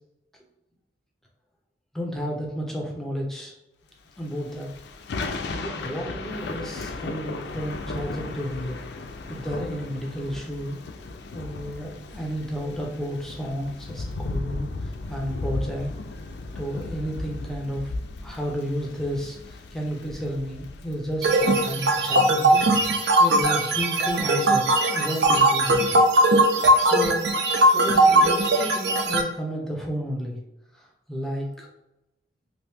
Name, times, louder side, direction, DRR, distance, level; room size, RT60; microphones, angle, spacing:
voice 1, 1.9-3.5 4.2-4.7 5.5-8.8 9.3-10.8 11.3-15.9 16.5-17.9 18.2-25.9 26.8-27.3 27.7-30.4 30.7-31.7, equal, ahead, -2 dB, 0.5 m, -32 dB
Thunder / Rain, 4.2-21.7, left 3 dB, 70° left, 0.4 m, -36 dB
sound 1, 21.2-29.2, right 1 dB, 70° right, 0.4 m, -19 dB
2.9 x 2.6 x 3.4 m, 0.91 s
head